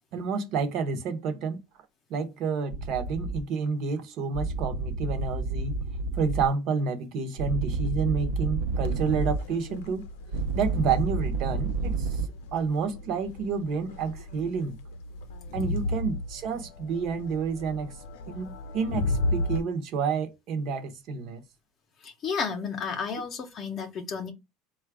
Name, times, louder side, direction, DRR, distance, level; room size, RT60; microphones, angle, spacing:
voice 1, 0.1-1.6 2.1-5.8 6.1-10.0 10.5-12.2 12.5-14.8 15.5-17.9 18.3-21.4, right 5 dB, 40° right, 0.7 m, -29 dB
sound 1, 2.7-3.4 4.3-6.5 7.4-9.4 10.3-12.3, right 3 dB, 85° right, 0.6 m, -29 dB
Crowd, 8.8-19.6, left 2 dB, 85° left, 0.6 m, -35 dB
voice 2, 22.0-24.3, left 5 dB, 30° left, 0.7 m, -32 dB
4.1 x 2.3 x 4.6 m
cardioid pair, 175°, 0 cm